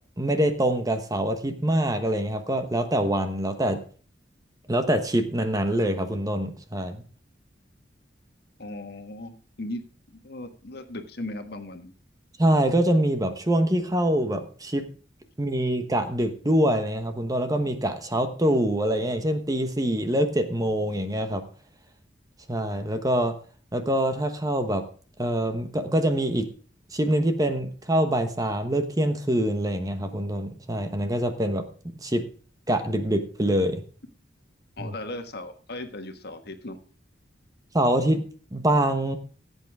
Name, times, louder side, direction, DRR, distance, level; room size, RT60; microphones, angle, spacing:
voice 1, 0.2-3.8 4.7-7.0 12.4-14.8 15.4-21.4 22.5-23.3 23.7-24.8 25.2-26.5 26.9-31.6 32.0-32.2 32.7-33.8 34.8-34.9 37.7-38.2 38.5-39.2, right 1 dB, 20° right, 8 dB, 1.1 m, -24 dB
voice 2, 8.6-9.8 10.1-11.9 34.8-36.8, left 1 dB, 60° left, 6 dB, 1.5 m, -37 dB
16.0 x 8.2 x 3.5 m, 0.40 s
head